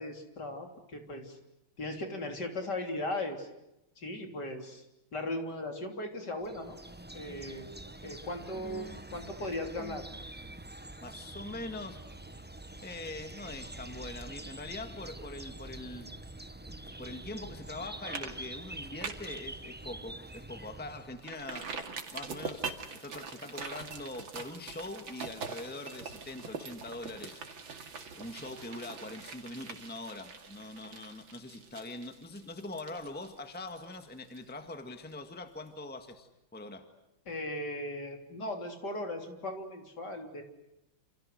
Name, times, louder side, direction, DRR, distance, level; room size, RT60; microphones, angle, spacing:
voice 1, 0.0-1.4 1.8-3.5 4.0-4.9 5.1-6.8 7.1-7.7 8.0-10.1 37.3-40.4, left 1 dB, 55° left, 4 dB, 4.1 m, -38 dB
sound 1, 6.4-21.3, right 1 dB, 10° right, 0.5 m, -46 dB
voice 2, 8.6-9.0 9.8-10.0 11.0-12.4 12.8-16.1 17.0-21.7 22.1-27.5 28.1-36.9, left 2 dB, 5° left, 7 dB, 1.7 m, -43 dB
sound 2, 17.6-17.8 18.1-18.3 18.6-19.4 19.8-19.9 20.3-20.4 21.2-34.8 35.1-35.2, right 5 dB, 75° right, 3.1 m, -43 dB
29.0 x 28.0 x 6.6 m, 0.89 s
omnidirectional pair, 2.2 m